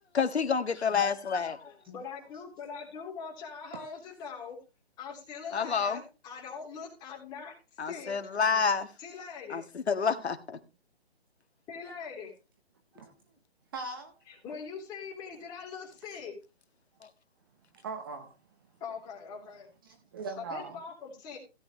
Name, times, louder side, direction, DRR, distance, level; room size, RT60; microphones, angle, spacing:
voice 1, 0.1-1.7 5.5-6.0 7.8-8.9 9.5-10.6, left 6 dB, 80° left, 1.7 m, -28 dB
voice 2, 1.6-4.6 5.0-7.5 7.8-8.1 9.0-9.6 11.7-12.3 14.3-16.4 18.8-19.7 20.4-21.4, left 6 dB, 10° left, 3.6 m, -42 dB
voice 3, 13.7-14.4 16.1-16.2 17.7-18.4 19.8-20.8, right 4 dB, 20° right, 0.9 m, -41 dB
16.5 x 9.1 x 3.2 m
hypercardioid pair, 165°, 32 cm